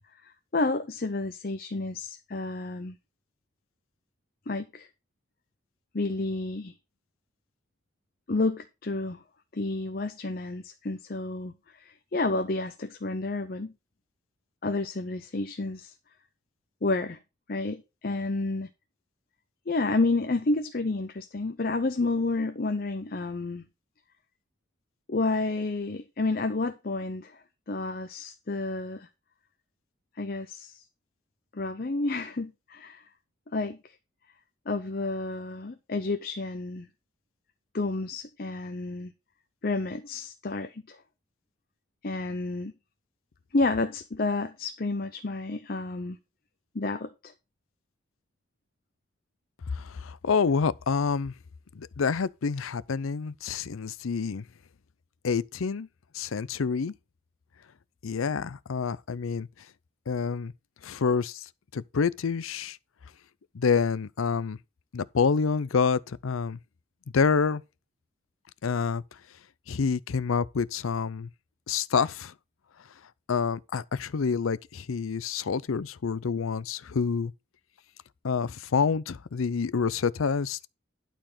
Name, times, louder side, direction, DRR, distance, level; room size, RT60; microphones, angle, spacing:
voice 1, 0.2-3.0 4.5-4.9 5.9-6.7 8.3-9.2 9.5-13.7 14.6-15.9 16.8-17.2 17.5-18.7 19.7-23.7 25.1-27.4 27.7-29.1 30.2-30.8 31.5-33.0 33.5-33.9 34.7-36.9 37.7-39.1 39.6-41.0 42.0-42.7 43.5-46.2 46.7-47.3, left 3 dB, 45° left, 0.6 m, -30 dB
voice 2, 49.7-51.3 51.7-54.4 55.2-55.9 56.1-56.9 58.0-59.5 60.1-60.5 60.8-62.8 63.5-64.6 64.9-66.6 67.1-67.6 68.6-69.0 69.7-71.3 71.7-72.3 73.3-77.3 78.2-80.7, left 5 dB, 85° left, 0.5 m, -27 dB
11.5 x 4.4 x 5.7 m
head